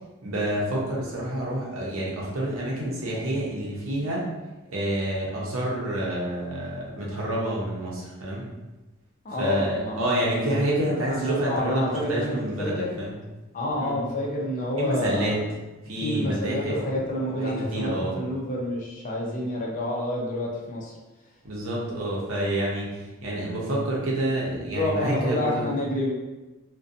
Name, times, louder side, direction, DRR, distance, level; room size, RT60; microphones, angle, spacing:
voice 1, 0.2-4.3 4.7-8.5 9.4-13.1 13.8-14.0 14.8-15.4 15.8-16.8 17.4-18.1 21.4-25.6, right 1 dB, 70° right, -4 dB, 0.7 m, -28 dB
voice 2, 9.2-10.6 11.1-12.3 12.6-12.9 13.5-15.5 16.0-21.0 24.7-26.1, left 1 dB, 40° left, -2 dB, 0.5 m, -28 dB
2.5 x 2.2 x 2.5 m, 1.1 s
head